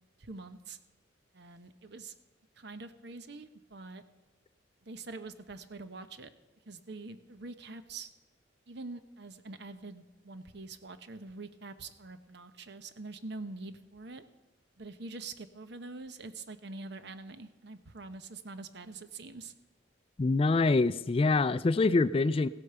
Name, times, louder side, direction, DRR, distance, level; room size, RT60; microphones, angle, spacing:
voice 1, 0.2-0.8 1.3-2.1 2.6-4.0 4.8-6.3 6.7-8.1 8.7-14.2 14.8-19.5, right 3 dB, 65° right, 11 dB, 0.9 m, -45 dB
voice 2, 20.2-22.5, left 3 dB, 30° left, 15 dB, 0.4 m, -25 dB
15.5 x 8.3 x 6.8 m, 1.1 s
head